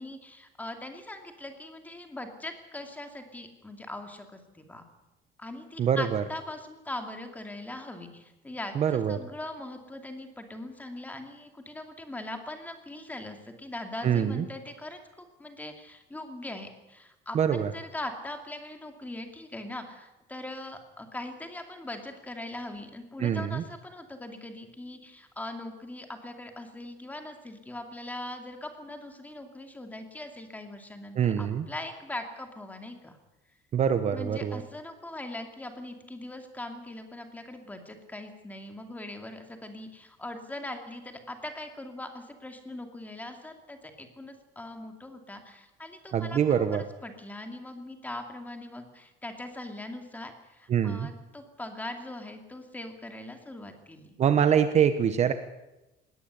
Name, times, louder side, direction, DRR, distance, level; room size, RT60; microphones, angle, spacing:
voice 1, 0.0-4.9 5.4-33.2 34.1-54.2, left 1 dB, 10° left, 5 dB, 2.6 m, -41 dB
voice 2, 5.8-6.2 8.7-9.2 14.0-14.5 17.3-17.7 23.2-23.6 31.2-31.6 33.7-34.6 46.1-46.8 50.7-51.1 54.2-55.3, right 8 dB, 35° right, 10 dB, 1.1 m, -24 dB
21.0 x 18.5 x 8.3 m, 0.98 s
cardioid pair, 170°, 20 cm